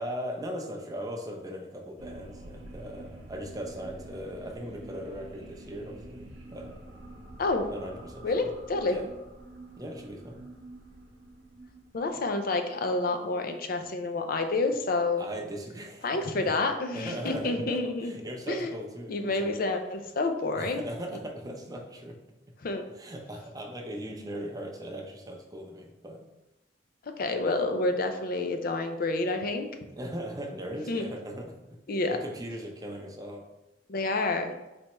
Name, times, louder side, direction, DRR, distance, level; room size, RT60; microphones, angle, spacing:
voice 1, 0.0-6.7 7.7-8.5 8.9-9.0 9.8-10.4 15.2-16.6 16.9-19.5 20.6-22.2 22.9-26.2 30.0-33.4, equal, 20° right, 1 dB, 0.6 m, -39 dB
sound 1, 2.0-14.8, right 1 dB, 75° right, 0.8 m, -48 dB
voice 2, 7.4-7.7 8.2-9.0 11.9-15.2 16.0-18.1 18.5-18.7 19.1-20.8 22.6-22.8 27.2-29.7 30.9-31.0 31.9-32.2 33.9-34.5, left 2 dB, 50° left, 6 dB, 0.5 m, -28 dB
4.3 x 3.3 x 3.0 m, 1.0 s
head